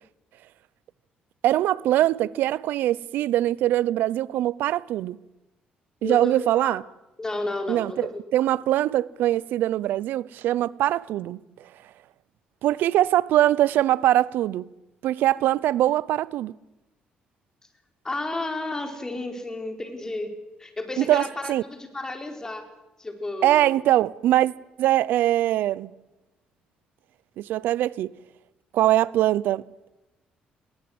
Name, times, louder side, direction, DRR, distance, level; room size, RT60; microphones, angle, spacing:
voice 1, 1.4-5.2 6.0-6.8 7.7-11.4 12.6-14.6 15.0-16.5 21.0-21.6 23.4-24.5 24.8-25.9 27.4-28.1 28.7-29.6, right 13 dB, 80° right, 0.7 m, -22 dB
voice 2, 6.0-6.8 7.2-8.2 18.0-20.3 20.6-22.6 23.0-23.8, left 2 dB, 20° left, 4.4 m, -32 dB
21.0 x 19.0 x 7.9 m
cardioid pair, 100°, 3 cm